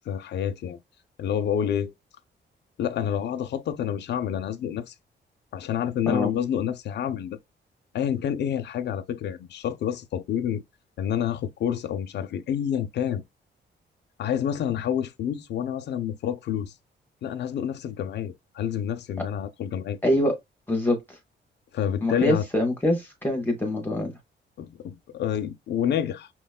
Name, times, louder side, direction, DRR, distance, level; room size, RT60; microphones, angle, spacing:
voice 1, 0.1-0.8 1.2-1.9 2.8-4.9 5.5-7.4 7.9-10.6 11.0-13.2 14.2-16.7 17.2-20.0 21.7-22.5 24.6-26.3, left 9 dB, 65° left, 0.4 m, -28 dB
voice 2, 20.0-20.3 20.7-21.2 22.0-24.1, left 1 dB, 10° left, 0.6 m, -24 dB
5.7 x 2.2 x 2.3 m
wide cardioid pair, 175°, 19 cm